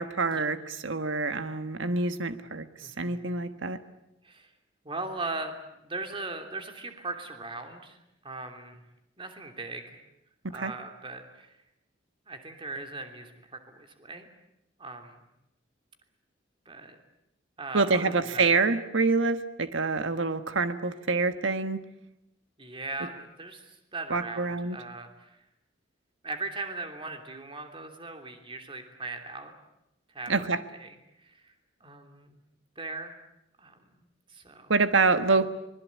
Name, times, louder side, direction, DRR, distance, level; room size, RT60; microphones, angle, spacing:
voice 1, 0.0-2.6 3.0-3.8 10.5-10.7 17.7-21.8 24.1-24.8 30.3-30.6 34.7-35.5, right 3 dB, 85° right, 10 dB, 1.4 m, -26 dB
voice 2, 2.8-3.3 4.2-4.5 4.8-5.5 5.8-8.0 8.2-8.8 9.2-10.0 10.5-11.5 12.3-14.3 14.8-15.2 16.6-17.0 17.6-18.5 22.6-25.4 26.2-29.5 30.1-30.5 30.8-30.9 31.2-31.5 31.8-32.4 32.8-33.1 33.6-33.8 34.3-34.7, right 3 dB, 30° right, 5 dB, 3.0 m, -39 dB
25.0 x 21.5 x 8.5 m, 0.85 s
head